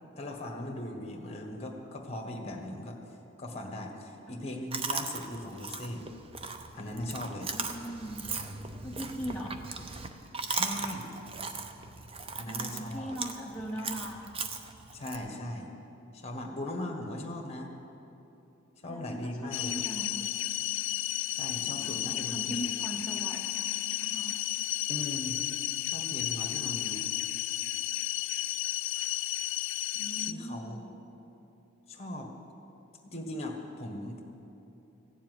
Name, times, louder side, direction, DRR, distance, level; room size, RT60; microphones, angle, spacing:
voice 1, 0.2-3.0 3.4-6.1 6.7-7.5 10.5-11.1 12.4-13.2 14.9-15.7 16.1-17.7 18.8-19.8 21.3-22.7 24.9-25.4 25.9-27.1 30.2-30.8 31.9-32.3 33.0-34.2, left 1 dB, 30° left, 2 dB, 1.5 m, -39 dB
voice 2, 4.2-4.5 7.5-8.3 8.8-9.6 12.5-14.5 16.8-17.0 18.9-20.3 21.8-23.7 24.0-24.4 30.0-30.9, equal, 5° left, -5 dB, 0.8 m, -40 dB
Chewing mastication, 4.7-15.2, right 4 dB, 25° right, 0.6 m, -38 dB
sound 1, 19.5-30.3, left 15 dB, 70° left, 0.3 m, -33 dB
15.5 x 7.3 x 9.3 m, 2.9 s
head